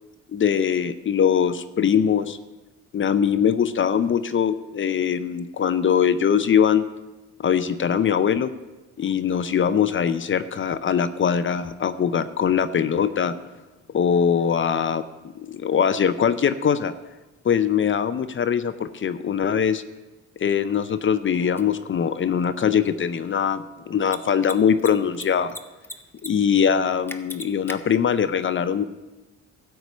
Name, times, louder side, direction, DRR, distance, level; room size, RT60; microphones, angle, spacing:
voice 1, 0.3-2.4 2.9-6.9 7.4-8.5 9.0-13.4 13.9-15.0 15.3-16.9 17.4-19.8 20.4-25.5 26.2-28.8, left 7 dB, 40° left, 12 dB, 0.6 m, -22 dB
Mechanisms, 21.6-21.7 24.0-24.2 24.4-24.5 24.8-25.6 25.8-26.3 26.5-26.6 27.1-27.8, left 1 dB, 5° left, 0.8 m, -35 dB
13.0 x 4.7 x 8.2 m, 1.1 s
cardioid pair, 90°, 30 cm